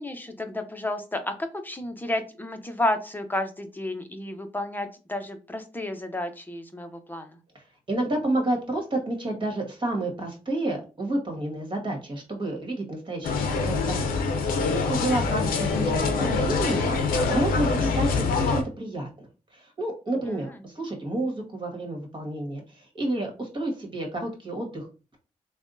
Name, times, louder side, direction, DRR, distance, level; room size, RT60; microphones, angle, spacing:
voice 1, 0.0-7.4 15.1-15.4 20.2-20.6, left 1 dB, 15° left, 6 dB, 0.8 m, -32 dB
voice 2, 7.9-19.3 19.5-24.9, right 1 dB, 35° right, 2 dB, 1.7 m, -30 dB
sound 1, 13.2-18.6, left 4 dB, 85° left, 0.6 m, -25 dB
3.4 x 2.3 x 2.6 m, 0.33 s
supercardioid pair, 45°, 15 cm